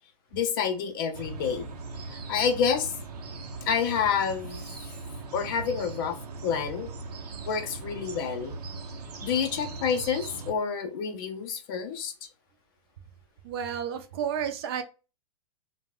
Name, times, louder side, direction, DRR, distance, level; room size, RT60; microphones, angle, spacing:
voice 1, 0.3-1.7 2.1-2.9 3.7-4.7 5.3-6.2 6.4-6.9 7.5-8.6 9.2-12.1, left 6 dB, 35° left, 7 dB, 0.4 m, -28 dB
sound 1, 1.1-10.5, right 3 dB, 85° right, 0.6 m, -40 dB
voice 2, 13.4-14.8, right 8 dB, 40° right, 7 dB, 0.4 m, -31 dB
2.2 x 2.0 x 3.5 m, 0.32 s
hypercardioid pair, 155°, 20 cm